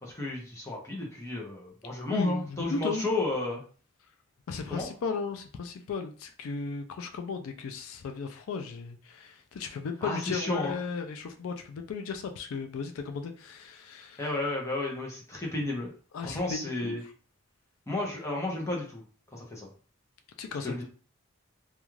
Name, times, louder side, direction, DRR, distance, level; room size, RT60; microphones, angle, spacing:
voice 1, 0.0-3.6 4.7-4.9 10.0-10.7 14.2-15.9 16.2-17.0 17.9-19.0 19.3-19.7 20.6-20.8, left 2 dB, 15° left, -2 dB, 0.6 m, -32 dB
voice 2, 2.1-3.0 4.5-14.2 16.1-17.0 20.4-20.8, left 5 dB, 80° left, 6 dB, 0.4 m, -35 dB
2.4 x 2.3 x 3.0 m, 0.40 s
head